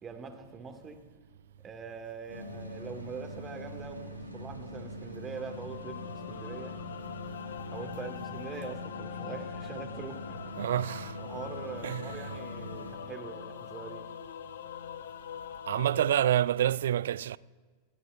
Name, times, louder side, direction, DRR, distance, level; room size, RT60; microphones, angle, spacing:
voice 1, 0.0-1.0 1.6-6.8 7.7-10.6 11.2-14.1, right 5 dB, 20° right, 2.0 m, -43 dB
sound 1, 2.3-13.0, equal, 85° right, 2.1 m, -43 dB
sound 2, 5.3-16.3, left 10 dB, 60° left, 0.6 m, -43 dB
voice 2, 10.6-11.2 11.8-12.1 15.7-17.4, right 11 dB, 60° right, 0.3 m, -27 dB
27.5 x 15.5 x 2.5 m
figure-of-eight pair, 90°, 0 cm